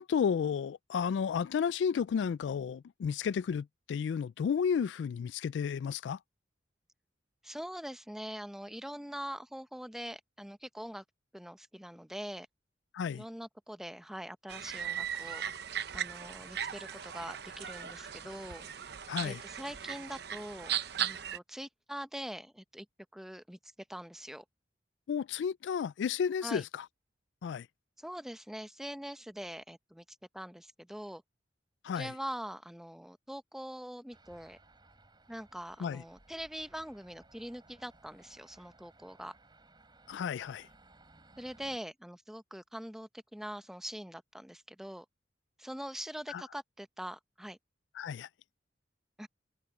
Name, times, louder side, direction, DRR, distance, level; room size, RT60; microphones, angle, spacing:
voice 1, 0.0-6.2 12.9-13.2 19.1-19.4 25.1-26.8 27.4-27.7 31.8-32.1 35.8-36.0 40.1-40.7 46.3-46.4 48.0-48.3, left 7 dB, 75° left, 0.3 m, -32 dB
voice 2, 7.4-11.0 11.3-12.5 13.1-15.4 15.9-18.7 19.2-22.9 23.1-24.4 26.4-26.6 28.0-30.0 30.3-31.2 31.9-34.6 35.3-39.3 41.4-45.1 45.6-47.6 49.2-49.3, equal, ahead, 0.7 m, -43 dB
sound 1, 14.5-21.4, right 9 dB, 60° right, 0.9 m, -38 dB
sound 2, 34.1-41.8, right 2 dB, 25° right, 4.7 m, -61 dB
head